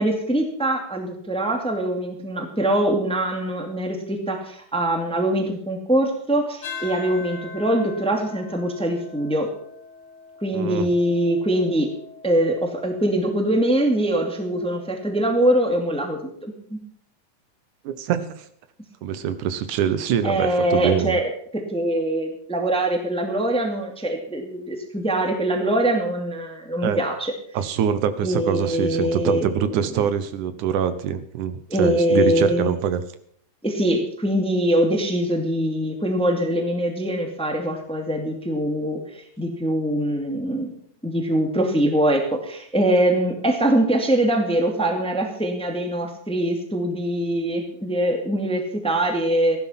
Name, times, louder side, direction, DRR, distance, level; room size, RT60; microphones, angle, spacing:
voice 1, 0.0-9.5 10.4-11.9 12.2-16.8 20.2-27.3 28.2-30.0 31.7-32.7 33.6-40.8 41.0-49.6, right 1 dB, ahead, 3 dB, 1.7 m, -23 dB
sound 1, 6.6-15.1, left 4 dB, 60° left, 2.7 m, -42 dB
voice 2, 10.5-10.9 17.8-18.5 19.0-21.2 26.8-27.0 27.5-33.0, right 8 dB, 80° right, 12 dB, 2.4 m, -24 dB
15.0 x 12.0 x 5.8 m, 0.63 s
omnidirectional pair, 3.6 m